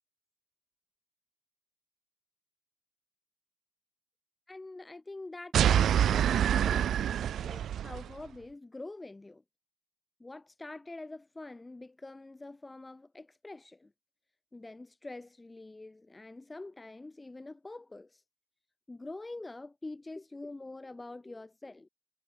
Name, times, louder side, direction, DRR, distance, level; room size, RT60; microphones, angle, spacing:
voice 1, 4.5-6.9 7.4-9.4 10.2-13.9 14.5-18.2 18.9-21.9, left 2 dB, 15° left, 6.7 m, -45 dB
sound 1, 5.5-8.1, right 10 dB, 65° right, 0.5 m, -26 dB
cardioid pair, 90°, 0 cm